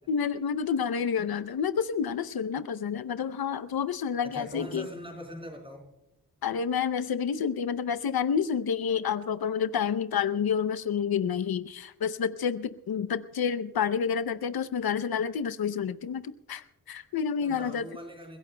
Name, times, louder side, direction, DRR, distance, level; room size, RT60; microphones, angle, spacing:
voice 1, 0.1-4.9 6.4-17.8, left 7 dB, 80° left, 13 dB, 0.7 m, -29 dB
voice 2, 4.2-5.9 17.4-18.4, equal, 15° right, 2 dB, 4.0 m, -42 dB
29.5 x 16.5 x 2.2 m, 0.89 s
wide cardioid pair, 170°, 36 cm